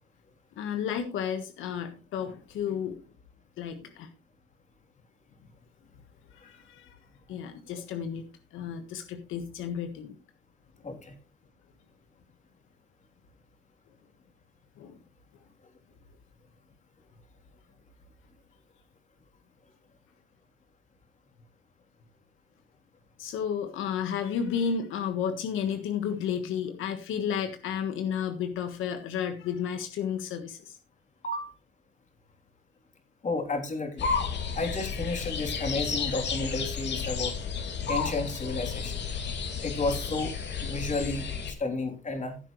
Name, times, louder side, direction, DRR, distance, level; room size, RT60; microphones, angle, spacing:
voice 1, 0.6-3.0 3.6-4.1 6.3-7.0 7.3-10.2 14.8-15.0 23.2-30.8 37.6-37.9, left 7 dB, 90° left, 7 dB, 1.5 m, -32 dB
voice 2, 10.8-11.1 31.2-31.5 33.2-34.1 34.5-37.3 37.9-39.0 39.6-42.4, left 2 dB, 40° left, 4 dB, 3.4 m, -32 dB
sound 1, 34.0-41.5, left 6 dB, 60° left, 2.5 m, -32 dB
15.5 x 8.1 x 3.2 m, 0.31 s
cardioid pair, 90°, 20 cm